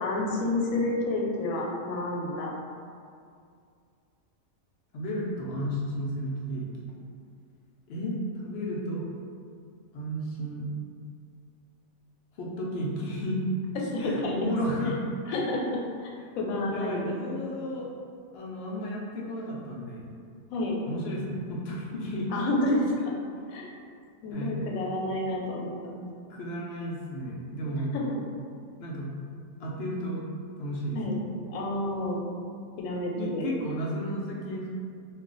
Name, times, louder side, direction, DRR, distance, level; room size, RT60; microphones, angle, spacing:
voice 1, 0.0-2.5 13.8-14.5 15.3-17.4 20.5-20.7 22.3-23.1 23.5-23.7 24.2-26.1 27.9-28.2 30.9-31.2 31.5-32.3 32.8-33.5, left 1 dB, 85° left, -2 dB, 1.0 m, -29 dB
voice 2, 4.9-6.9 7.9-9.1 9.9-10.7 12.4-13.5 14.0-15.0 16.7-17.9 18.3-20.1 20.8-22.3 24.3-24.7 26.3-27.9 28.8-29.1 29.6-30.2 30.6-31.2 33.2-34.7, equal, 65° left, -4 dB, 0.6 m, -33 dB
2.4 x 2.2 x 3.7 m, 2.3 s
omnidirectional pair, 1.4 m